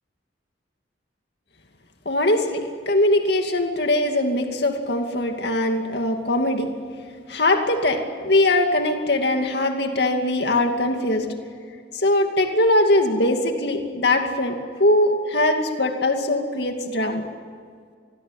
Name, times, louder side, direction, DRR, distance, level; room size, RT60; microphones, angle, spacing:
voice 1, 2.1-6.7 7.3-11.3 11.9-14.5 14.8-17.3, left 1 dB, 55° left, 4 dB, 2.5 m, -21 dB
27.0 x 21.5 x 9.5 m, 2.1 s
head